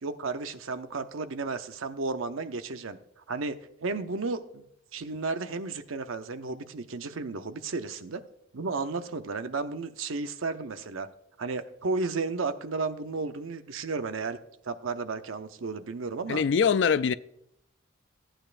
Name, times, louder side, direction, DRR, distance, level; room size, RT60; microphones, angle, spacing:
voice 1, 0.0-3.0 3.3-4.6 4.9-8.2 8.5-11.1 11.4-14.4 14.6-16.4, right 3 dB, 85° right, 0.7 m, -33 dB
voice 2, 16.3-17.1, left 6 dB, 60° left, 0.3 m, -23 dB
14.0 x 8.9 x 2.5 m
head